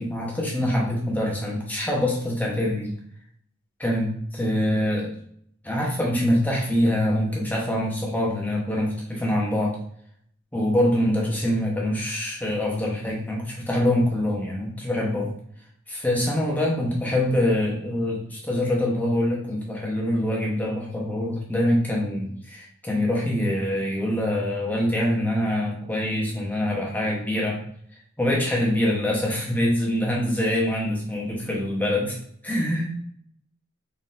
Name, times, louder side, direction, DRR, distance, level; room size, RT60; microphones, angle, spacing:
voice 1, 0.0-2.9 3.8-5.1 5.6-9.8 10.5-15.3 15.9-27.6 28.2-32.2 32.4-33.0, left 1 dB, 10° left, -3 dB, 0.9 m, -24 dB
4.0 x 3.8 x 2.6 m, 0.65 s
head